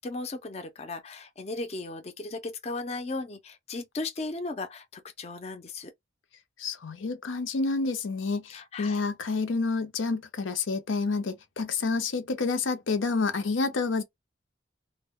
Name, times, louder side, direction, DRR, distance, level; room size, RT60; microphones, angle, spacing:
voice 1, 0.0-5.9 8.5-9.0, left 3 dB, 35° left, 0.4 m, -36 dB
voice 2, 6.6-14.0, left 4 dB, 90° left, 0.6 m, -29 dB
2.1 x 2.1 x 3.5 m
head